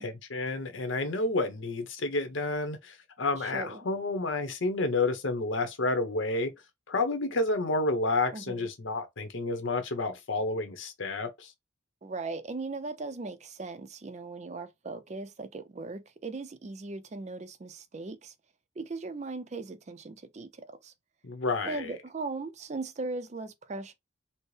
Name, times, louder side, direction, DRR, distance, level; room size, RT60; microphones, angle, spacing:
voice 1, 0.0-6.5 6.9-11.5 21.2-22.0, left 2 dB, 85° left, 0.9 m, -30 dB
voice 2, 3.4-3.8 8.3-8.7 12.0-18.3 18.8-20.9 21.6-23.9, right 3 dB, 35° right, 0.4 m, -38 dB
4.3 x 2.0 x 3.2 m
head